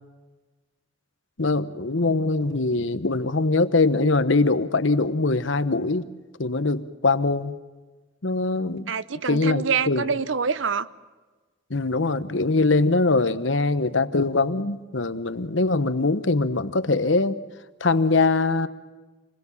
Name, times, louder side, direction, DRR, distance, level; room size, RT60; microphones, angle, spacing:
voice 1, 1.4-6.0 6.4-7.6 8.2-8.9 9.2-10.1 11.7-17.4 17.8-18.7, left 3 dB, 70° left, 1.1 m, -22 dB
voice 2, 8.9-10.9, right 6 dB, 70° right, 0.8 m, -26 dB
27.5 x 21.0 x 7.3 m
head